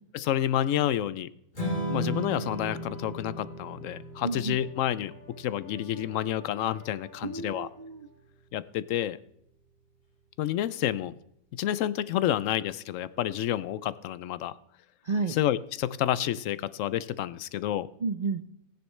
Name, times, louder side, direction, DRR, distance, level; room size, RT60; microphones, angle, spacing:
voice 1, 0.1-1.3 1.9-7.7 8.5-9.2 10.4-11.1 11.5-14.5 15.3-17.9, left 11 dB, 70° left, 16 dB, 0.8 m, -29 dB
Strum, 1.5-7.8, equal, 35° left, 3.9 m, -37 dB
Brass instrument, 4.0-8.2, left 4 dB, 45° right, 5.4 m, -53 dB
voice 2, 4.2-4.6 7.2-8.1 15.0-15.3 18.0-18.5, right 4 dB, 65° right, 8 dB, 0.4 m, -31 dB
15.5 x 10.0 x 3.2 m, 0.74 s
omnidirectional pair, 1.6 m